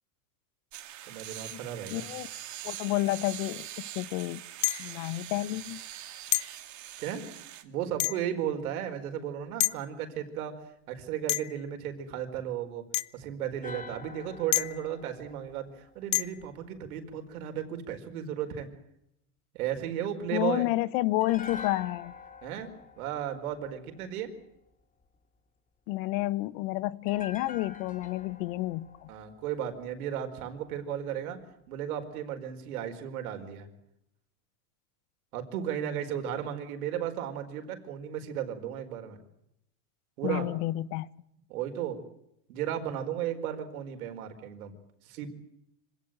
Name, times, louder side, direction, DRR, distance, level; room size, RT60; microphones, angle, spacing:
sound 1, 0.7-7.6, right 12 dB, 40° right, 2.6 m, -43 dB
voice 1, 1.1-2.1 7.0-7.2 7.6-10.6 10.9-12.8 13.1-15.7 15.9-18.7 19.5-20.7 22.4-24.3 29.1-31.4 31.7-33.7 35.3-39.2 40.2-40.5 41.5-42.0 42.5-44.7 45.0-45.3, right 10 dB, 85° right, 4.8 m, -35 dB
voice 2, 1.9-2.3 2.6-3.7 3.9-4.4 4.8-5.8 20.3-22.1 25.9-29.1 40.2-41.1, left 17 dB, 65° left, 1.2 m, -30 dB
sound 2, 4.6-5.0 6.3-6.6 8.0-8.4 9.6-9.8 11.3-11.7 12.9-13.1 14.5-14.9 16.1-16.4, left 19 dB, 40° left, 0.8 m, -29 dB
sound 3, 13.6-16.8 21.2-24.4 27.1-30.3 30.5-30.7, left 5 dB, 20° left, 3.2 m, -47 dB
26.0 x 17.5 x 8.9 m
supercardioid pair, 130°, 43 cm